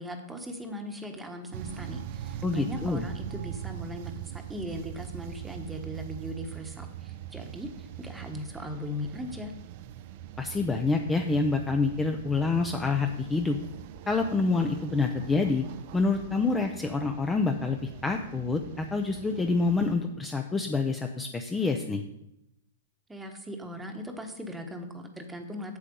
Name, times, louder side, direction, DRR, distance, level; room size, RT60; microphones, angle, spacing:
voice 1, 0.0-9.5 23.1-25.8, equal, 5° right, 5 dB, 1.2 m, -39 dB
sound 1, 1.5-19.9, right 11 dB, 50° right, 0.6 m, -42 dB
voice 2, 2.4-3.1 10.4-13.6 14.1-15.6 15.9-22.0, left 3 dB, 10° left, 4 dB, 0.6 m, -27 dB
8.5 x 7.5 x 5.3 m, 0.83 s
hypercardioid pair, 140°, 0 cm